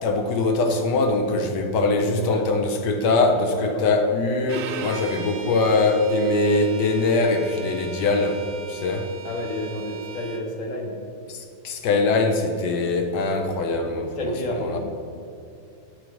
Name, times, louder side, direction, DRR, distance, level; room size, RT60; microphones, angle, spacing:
voice 1, 0.0-9.1 11.3-14.2 14.7-14.8, left 3 dB, 70° left, 5 dB, 1.3 m, -22 dB
voice 2, 1.9-2.5 3.5-3.8 9.2-11.0 14.2-14.8, left 1 dB, 50° left, 1 dB, 1.2 m, -30 dB
Bowed string instrument, 4.5-10.5, right 6 dB, 70° right, 1.1 m, -38 dB
9.8 x 5.0 x 4.6 m, 2.5 s
omnidirectional pair, 2.0 m